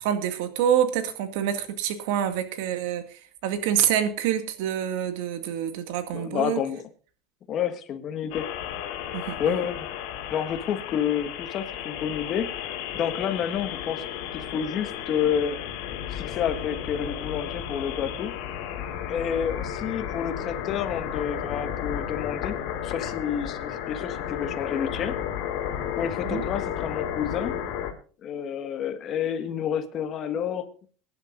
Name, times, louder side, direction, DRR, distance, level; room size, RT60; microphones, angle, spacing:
voice 1, 0.0-6.6 9.1-9.5 26.2-26.4, right 10 dB, 75° right, 9 dB, 2.1 m, -27 dB
voice 2, 6.1-6.8 7.5-8.5 9.4-9.9 10.3-14.0 14.3-15.6 16.1-18.3 19.1-22.6 22.8-25.2 26.0-27.6 28.2-30.7, left 8 dB, 40° left, 8 dB, 1.6 m, -29 dB
sound 1, 8.3-27.9, left 10 dB, 65° left, 3.2 m, -33 dB
22.5 x 11.0 x 2.6 m, 0.39 s
supercardioid pair, 145°, 0 cm